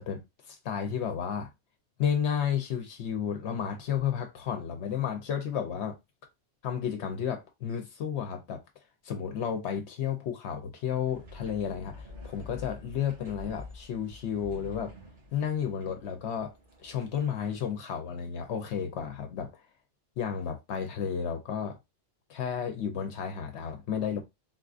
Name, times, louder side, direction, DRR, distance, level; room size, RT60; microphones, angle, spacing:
voice 1, 0.0-1.5 2.0-5.9 6.6-8.6 9.0-14.9 15.3-16.5 16.8-19.5 20.2-21.8 22.3-24.2, left 8 dB, 75° left, 0.9 m, -32 dB
sound 1, 11.1-17.9, left 3 dB, 90° right, 1.9 m, -48 dB
3.9 x 2.3 x 2.4 m
omnidirectional pair, 1.2 m